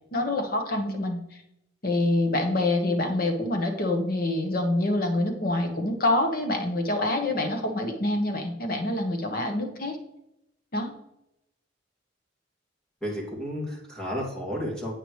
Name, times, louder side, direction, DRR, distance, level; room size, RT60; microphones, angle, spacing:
voice 1, 0.1-1.2 1.8-10.0 10.7-10.9, left 2 dB, 50° left, 4 dB, 1.3 m, -26 dB
voice 2, 13.0-14.9, equal, 5° left, -3 dB, 2.5 m, -32 dB
9.4 x 8.8 x 3.3 m, 0.82 s
head